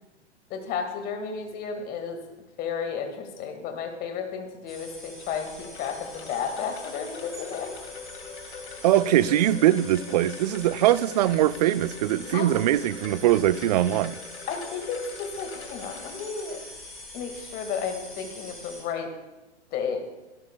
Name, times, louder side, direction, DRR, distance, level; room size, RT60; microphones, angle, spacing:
voice 1, 0.5-2.2 2.6-7.7 12.3-12.5 14.5-16.6 17.1-19.1 19.7-20.0, left 6 dB, 25° left, 1.9 m, -32 dB
sound 1, 4.7-18.8, left 1 dB, ahead, 5.2 m, -44 dB
Wind chime, 4.8-17.0, left 6 dB, 65° left, 1.7 m, -44 dB
voice 2, 8.8-14.2, right 13 dB, 35° right, 0.4 m, -22 dB
24.5 x 12.0 x 2.3 m
figure-of-eight pair, 115°, 35 cm